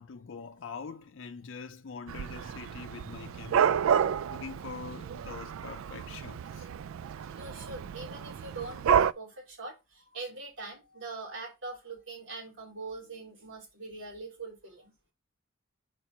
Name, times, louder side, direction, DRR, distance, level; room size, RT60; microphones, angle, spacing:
voice 1, 0.0-3.8 4.3-6.7, left 5 dB, 65° left, 0.5 m, -44 dB
Dog / Cat, 2.1-9.1, right 8 dB, 85° right, 0.3 m, -30 dB
voice 2, 7.3-14.9, right 3 dB, 65° right, 3.4 m, -42 dB
4.5 x 4.4 x 5.9 m
head